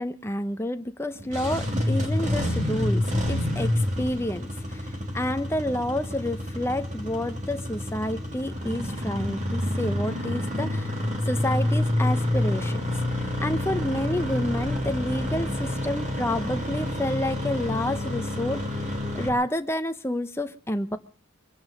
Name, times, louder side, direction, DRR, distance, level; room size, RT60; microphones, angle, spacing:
voice 1, 0.0-10.9 11.2-18.8 19.1-21.0, left 1 dB, 10° left, 8 dB, 0.8 m, -29 dB
Engine starting, 1.2-19.3, left 1 dB, 35° right, 3.1 m, -28 dB
22.5 x 9.4 x 6.5 m, 0.41 s
head